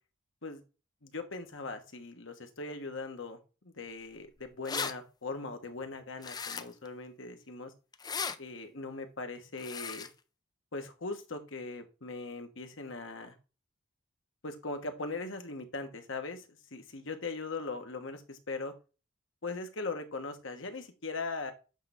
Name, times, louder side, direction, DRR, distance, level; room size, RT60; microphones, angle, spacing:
voice 1, 1.0-3.4 3.6-7.7 8.4-10.1 10.7-13.4 14.4-18.7 19.4-21.5, left 3 dB, 60° left, 6 dB, 1.3 m, -40 dB
sound 1, 4.2-4.3 4.5-4.9 6.2-6.9 7.9-8.4 9.6-10.1, left 5 dB, 20° left, 0.4 m, -36 dB
8.6 x 3.3 x 5.7 m, 0.32 s
head